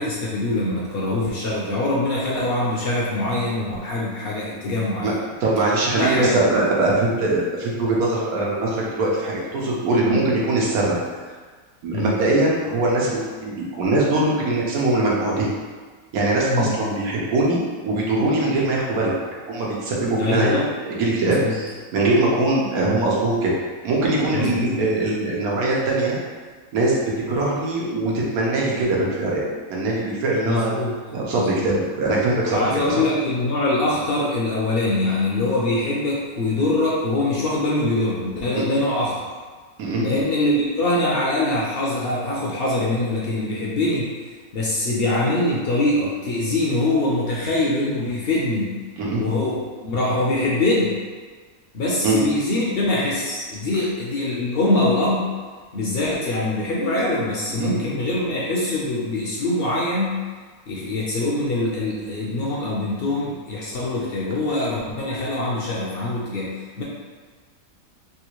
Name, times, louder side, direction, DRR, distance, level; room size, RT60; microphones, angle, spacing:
voice 1, 0.0-5.1 6.0-6.4 10.1-10.2 11.9-12.1 16.4-16.8 20.2-20.6 21.2-21.5 24.3-24.8 30.5-30.9 31.3-31.7 32.5-39.2 40.0-44.1 44.5-48.7 49.1-50.9 51.7-55.3 55.7-60.2 60.7-66.8, left 2 dB, 60° left, -5 dB, 0.6 m, -23 dB
voice 2, 5.4-11.0 11.8-15.5 16.1-19.1 19.5-20.5 20.9-23.5 23.8-26.2 26.7-26.9 27.3-30.7 31.1-33.1 38.5-38.8 39.8-40.1 49.0-49.2 52.0-52.2 57.6-57.7, right 2 dB, 90° right, -4 dB, 1.3 m, -22 dB
3.6 x 2.4 x 3.0 m, 1.5 s
omnidirectional pair, 1.5 m